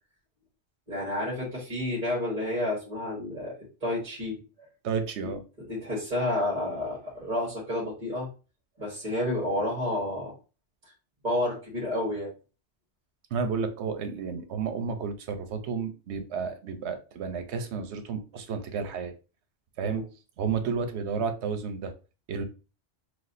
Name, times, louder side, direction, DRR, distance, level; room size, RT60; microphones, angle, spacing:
voice 1, 0.9-3.5 3.8-4.7 5.2-5.3 5.7-8.3 8.8-10.3 11.2-12.3 19.8-20.0, left 1 dB, 45° right, -6 dB, 1.6 m, -30 dB
voice 2, 4.8-5.4 13.3-19.1 19.8-20.0 20.4-21.9 22.3-22.4, right 5 dB, 85° right, 8 dB, 1.0 m, -31 dB
6.0 x 2.4 x 2.6 m, 0.33 s
omnidirectional pair, 1.1 m